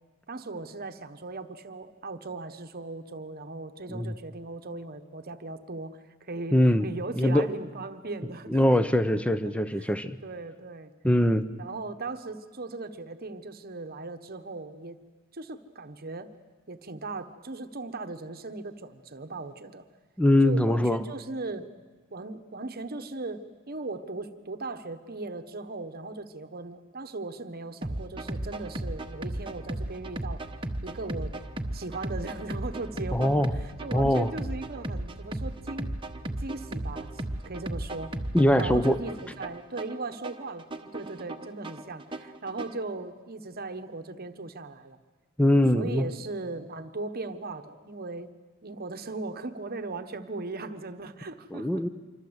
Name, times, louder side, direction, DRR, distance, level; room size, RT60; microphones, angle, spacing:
voice 1, 0.3-8.8 9.1-9.2 9.4-10.0 10.2-10.9 11.6-15.0 15.3-16.3 16.7-19.9 20.4-21.7 22.1-30.5 30.8-31.3 31.7-35.9 36.4-38.1 38.6-40.7 40.9-45.0 45.7-48.3 48.6-51.9, right 3 dB, 45° right, 9 dB, 1.1 m, -38 dB
voice 2, 6.5-6.9 7.2-7.5 8.5-10.2 11.0-11.5 20.2-21.0 33.1-33.5 33.9-34.3 38.3-39.0 45.4-46.1 51.5-51.9, left 1 dB, 5° left, 12 dB, 0.8 m, -22 dB
sound 1, 27.8-42.8, right 1 dB, 20° right, 1.1 m, -35 dB
26.5 x 24.5 x 8.0 m, 1.3 s
head